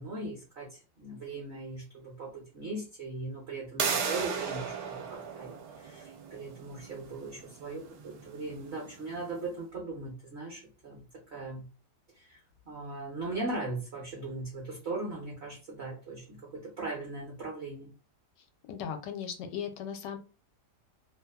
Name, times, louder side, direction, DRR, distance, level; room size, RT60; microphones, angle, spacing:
voice 1, 0.0-11.6 12.1-12.4 12.7-17.9, right 2 dB, 55° right, -2 dB, 0.7 m, -39 dB
sound 1, 3.8-9.4, right 6 dB, 75° right, 1.2 m, -36 dB
voice 2, 18.7-20.2, left 8 dB, 85° left, 6 dB, 1.2 m, -37 dB
2.9 x 2.0 x 2.2 m, 0.34 s
omnidirectional pair, 1.9 m